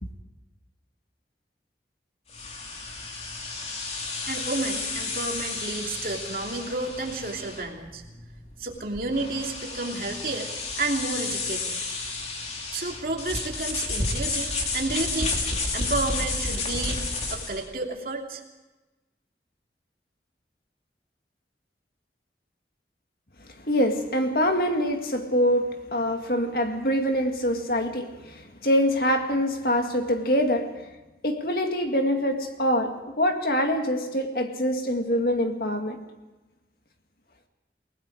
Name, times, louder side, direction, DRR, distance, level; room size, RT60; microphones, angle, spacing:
sound 1, 2.3-17.7, left 3 dB, 35° left, 2.9 m, -31 dB
voice 1, 4.3-8.0 8.6-10.5 10.8-11.8 12.7-15.3 15.7-17.0 17.3-18.4, right 2 dB, 55° right, 2.9 m, -31 dB
voice 2, 23.6-30.9 31.2-36.0, equal, 55° left, 2.1 m, -25 dB
29.0 x 18.5 x 4.9 m
head